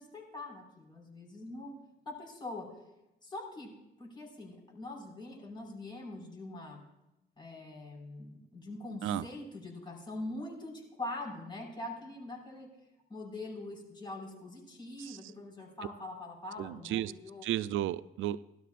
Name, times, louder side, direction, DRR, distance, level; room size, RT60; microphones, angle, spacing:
voice 1, 0.0-1.7 2.1-2.7 3.2-3.7 4.0-6.8 7.4-12.7 13.1-17.5, left 2 dB, 25° left, -1 dB, 5.2 m, -43 dB
voice 2, 16.6-17.1 17.4-18.4, right 12 dB, 80° right, 16 dB, 0.4 m, -33 dB
17.5 x 12.5 x 2.5 m, 0.91 s
cardioid pair, 90°, 20 cm